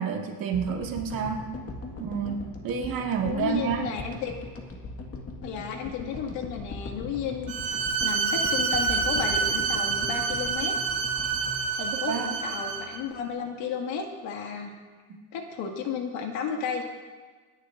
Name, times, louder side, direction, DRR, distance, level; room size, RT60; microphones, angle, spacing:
voice 1, 0.0-1.4 2.0-3.9 12.1-12.3 15.1-15.2, right 7 dB, 50° right, 1 dB, 2.0 m, -29 dB
sound 1, 0.5-12.9, left 2 dB, 30° left, 1.8 m, -40 dB
voice 2, 3.2-4.3 5.4-10.7 11.7-14.7 15.3-16.8, left 6 dB, 75° left, 2 dB, 2.2 m, -33 dB
Bowed string instrument, 7.5-13.0, right 5 dB, 70° right, 1.8 m, -27 dB
27.5 x 11.0 x 2.6 m, 1.5 s
cardioid pair, 135°, 45 cm